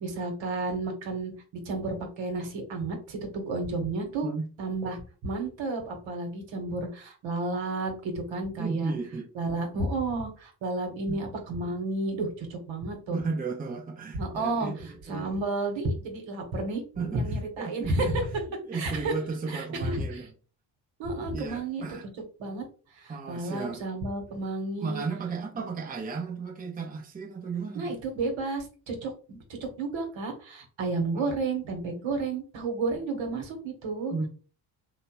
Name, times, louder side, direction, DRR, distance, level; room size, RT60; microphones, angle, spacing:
voice 1, 0.0-1.3 1.6-4.3 4.6-8.9 9.3-13.2 14.1-14.7 15.1-18.2 18.7-19.1 19.5-20.3 21.0-21.8 22.4-22.7 23.0-25.0 27.7-34.1, right 3 dB, 65° right, 1.1 m, -31 dB
voice 2, 8.6-9.3 11.1-11.2 13.1-15.3 17.0-17.2 17.6-18.2 18.6-20.3 21.3-22.1 23.1-23.8 24.8-28.0 31.1-31.3 34.1-34.3, right 4 dB, 20° right, 0.7 m, -34 dB
2.9 x 2.2 x 2.9 m
supercardioid pair, 60°, 49 cm